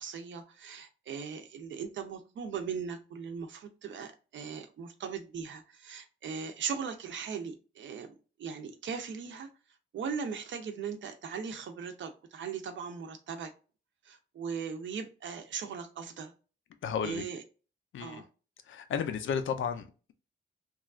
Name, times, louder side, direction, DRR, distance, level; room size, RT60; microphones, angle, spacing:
voice 1, 0.0-8.1 8.4-9.5 9.9-13.5 14.0-16.3 17.0-17.4 18.0-18.3, right 6 dB, 70° right, 0.5 m, -39 dB
voice 2, 16.8-17.2 17.9-18.2 18.7-20.1, left 7 dB, 80° left, 0.5 m, -33 dB
3.0 x 2.3 x 2.3 m
wide cardioid pair, 180°, 20 cm